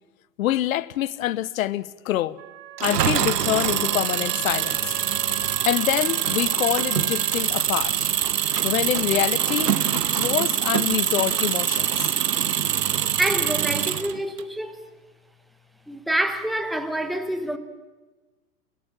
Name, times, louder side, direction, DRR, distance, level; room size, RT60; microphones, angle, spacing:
voice 1, 0.4-2.4 2.8-4.8 5.6-7.9 8.6-12.1, left 13 dB, 60° left, 1.0 m, -26 dB
Wind instrument woodwind instrument, 2.4-7.5, right 10 dB, 40° right, 3.6 m, -40 dB
Engine, 2.8-14.4, right 10 dB, 80° right, 1.4 m, -24 dB
voice 2, 13.2-14.8 15.9-17.6, right 1 dB, ahead, 1.2 m, -27 dB
29.0 x 17.0 x 7.5 m
hypercardioid pair, 125°, 47 cm